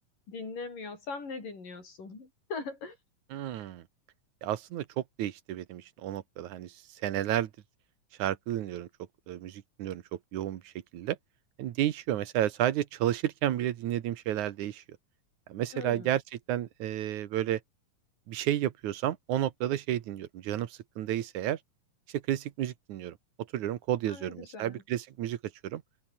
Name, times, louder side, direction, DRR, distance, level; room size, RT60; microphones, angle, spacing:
voice 1, 0.3-3.0 15.7-16.2 24.1-24.8, left 4 dB, 70° left, 9.1 m, -40 dB
voice 2, 3.3-3.8 4.4-7.5 8.2-8.9 9.3-11.2 11.6-14.8 15.5-17.6 18.3-21.6 22.1-23.2 23.5-25.4 25.6-25.8, right 12 dB, 65° right, 2.5 m, -32 dB
open air
omnidirectional pair, 3.9 m